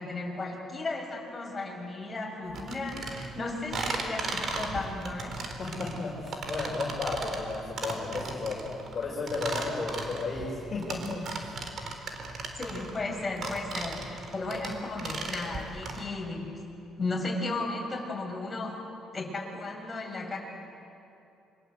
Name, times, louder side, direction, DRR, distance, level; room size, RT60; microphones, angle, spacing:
voice 1, 0.0-5.4 12.5-16.5 17.0-18.8 19.1-20.4, left 2 dB, 20° left, -1 dB, 6.8 m, -35 dB
sound 1, 2.5-16.0, right 3 dB, 50° right, 4.0 m, -36 dB
voice 2, 5.6-8.6 8.9-11.6, left 3 dB, 35° left, -4 dB, 5.4 m, -33 dB
27.5 x 24.5 x 8.3 m, 2.7 s
cardioid pair, 110°, 0 cm